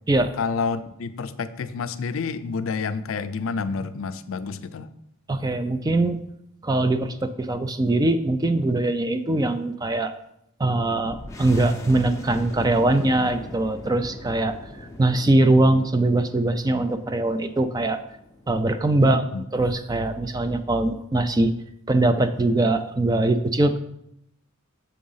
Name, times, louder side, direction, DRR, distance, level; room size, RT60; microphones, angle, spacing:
voice 1, 0.4-4.9 11.0-11.3 19.0-19.4, left 5 dB, 75° left, 12 dB, 0.4 m, -29 dB
voice 2, 5.3-6.2 6.6-10.1 10.6-14.6 15.0-18.0 18.5-21.5 21.9-23.8, right 2 dB, 20° right, 10 dB, 0.4 m, -22 dB
sound 1, 11.1-20.3, left 1 dB, 15° left, 0.7 m, -43 dB
6.9 x 3.7 x 5.5 m, 0.76 s
head